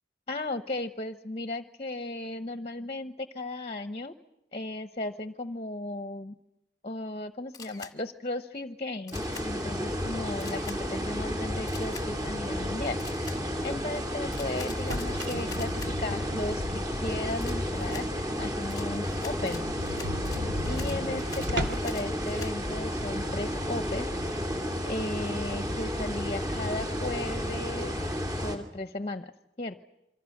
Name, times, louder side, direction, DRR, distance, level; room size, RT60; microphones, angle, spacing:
voice 1, 0.3-4.1 4.5-6.3 6.8-13.4 13.6-19.7 20.6-24.1 24.8-28.0 28.4-29.3 29.6-29.8, left 2 dB, 35° left, 9 dB, 0.9 m, -36 dB
Camera, 7.5-7.9 9.1-9.5 10.4-10.8 11.7-12.1 13.0-13.4 14.3-15.9 17.4-18.1 18.7-22.5, left 5 dB, 20° left, 1.3 m, -45 dB
sound 1, 9.1-28.6, equal, 20° right, 2.7 m, -32 dB
sound 2, 14.7-17.3 17.7-17.8 18.2-18.3 18.6-18.7 19.0-19.1 19.4-22.0, equal, 80° right, 2.9 m, -36 dB
27.0 x 24.5 x 6.6 m, 0.94 s
head